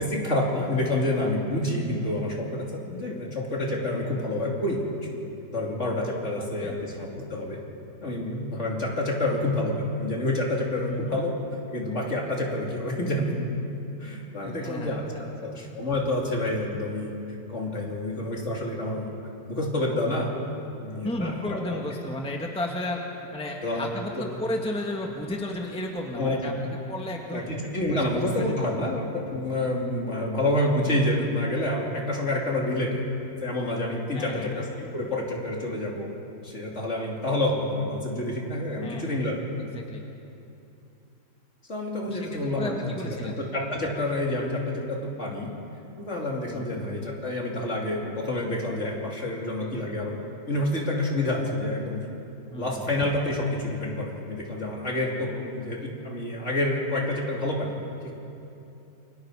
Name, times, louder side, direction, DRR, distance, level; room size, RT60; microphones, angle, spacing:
voice 1, 0.0-4.8 5.5-7.6 8.0-11.4 11.7-13.4 14.0-15.1 15.3-17.1 17.5-19.1 19.5-20.3 20.8-21.8 23.6-24.4 26.1-26.6 27.3-33.0 33.4-36.1 36.4-39.7 41.7-50.2 50.5-52.0 52.6-57.7 58.0-58.1, left 1 dB, 45° left, -1 dB, 3.1 m, -28 dB
voice 2, 6.4-6.8 10.9-11.2 14.4-15.5 21.0-23.0 23.3-26.5 26.9-27.5 27.9-28.0 28.4-28.9 34.1-34.5 38.8-39.2 39.7-40.0 42.1-43.4 46.5-46.9 52.5-52.7, left 1 dB, 5° left, 0 dB, 1.7 m, -33 dB
28.5 x 24.0 x 4.9 m, 2.8 s
omnidirectional pair, 1.8 m